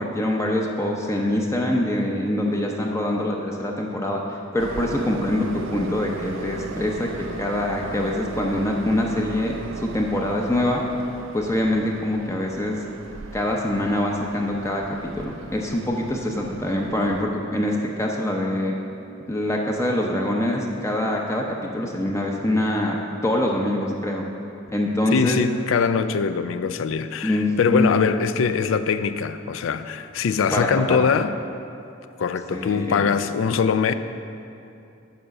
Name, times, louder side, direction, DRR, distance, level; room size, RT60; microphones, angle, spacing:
voice 1, 0.0-7.1 7.4-10.8 11.3-12.8 13.3-14.8 15.2-18.7 19.3-23.0 23.2-24.2 24.7-25.4 27.2-28.0 30.5-31.0 32.5-33.0, left 1 dB, 15° left, 0 dB, 0.6 m, -24 dB
Train, 4.6-17.2, right 4 dB, 80° right, 0.4 m, -37 dB
voice 2, 25.1-31.3 32.2-33.9, left 6 dB, 85° left, 11 dB, 0.4 m, -22 dB
7.1 x 4.9 x 6.5 m, 2.7 s
head